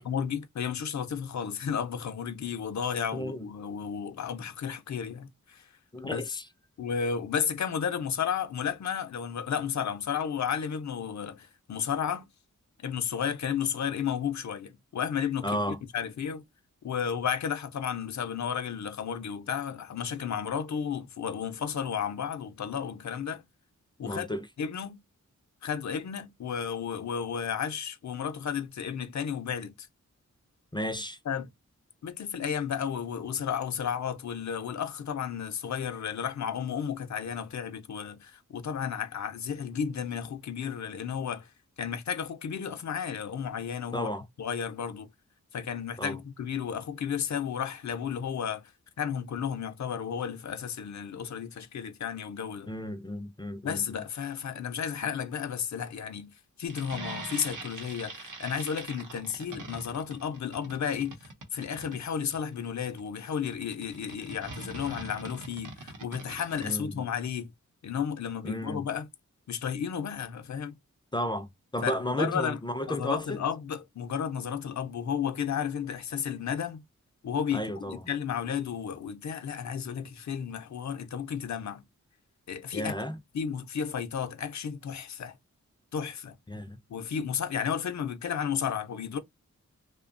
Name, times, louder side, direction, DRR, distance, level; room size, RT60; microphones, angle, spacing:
voice 1, 0.0-5.7 6.0-6.2 6.8-12.3 12.8-16.4 16.8-23.4 24.0-24.3 24.6-25.0 25.6-29.9 31.3-31.5 32.0-41.5 41.8-44.1 44.4-45.1 45.5-48.6 49.0-52.7 53.6-56.3 56.6-67.5 67.8-69.1 69.5-70.7 71.8-72.6 72.9-76.8 77.2-81.8 82.5-82.9 83.3-85.4 85.9-86.4 86.9-89.2, left 7 dB, 65° left, 0.5 m, -33 dB
voice 2, 3.1-3.5 5.9-6.4 15.4-15.8 24.0-24.5 30.7-31.2 43.9-44.2 46.0-46.2 52.7-53.8 66.6-66.9 68.4-68.8 71.1-71.5 71.7-73.4 77.5-78.0 82.7-83.2 86.5-86.8, equal, 15° left, 0.4 m, -33 dB
sound 1, 56.7-66.7, right 3 dB, 90° right, 0.8 m, -43 dB
2.7 x 2.1 x 2.5 m
wide cardioid pair, 95°, 30 cm